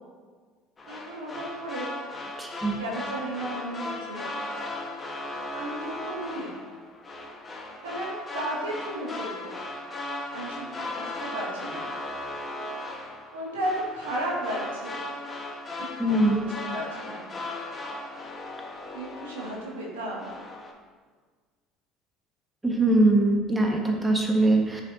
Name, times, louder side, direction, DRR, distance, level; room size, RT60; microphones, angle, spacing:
sound 1, 0.8-19.9 20.2-20.7, left 1 dB, 25° left, 1.8 m, -37 dB
voice 1, 0.9-1.9 2.8-4.2 5.5-6.6 7.8-9.5 10.3-11.9 13.3-15.0 15.8-17.2 18.8-20.2, right 1 dB, 80° right, -4 dB, 2.6 m, -34 dB
voice 2, 2.4-2.7 16.0-16.4 22.6-24.8, right 2 dB, 10° right, 0 dB, 2.0 m, -22 dB
14.0 x 6.8 x 3.0 m, 1.5 s
hypercardioid pair, 65°, 0 cm